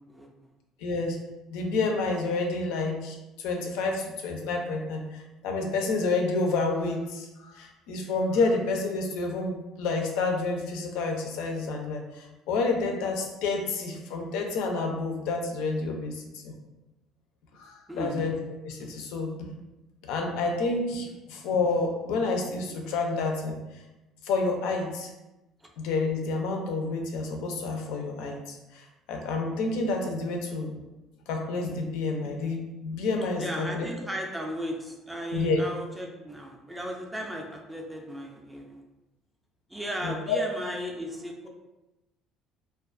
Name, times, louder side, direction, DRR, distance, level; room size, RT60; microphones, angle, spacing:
voice 1, 0.8-1.2 1.5-16.5 17.6-18.3 18.6-19.3 20.0-23.6 24.2-25.1 25.8-30.7 31.3-33.9 35.3-35.6 40.0-40.4, left 3 dB, 90° left, 2 dB, 0.4 m, -29 dB
voice 2, 17.9-18.2 33.4-38.8 39.7-41.5, equal, 5° right, 0 dB, 0.3 m, -35 dB
2.3 x 2.2 x 2.5 m, 0.99 s
cardioid pair, 155°, 0 cm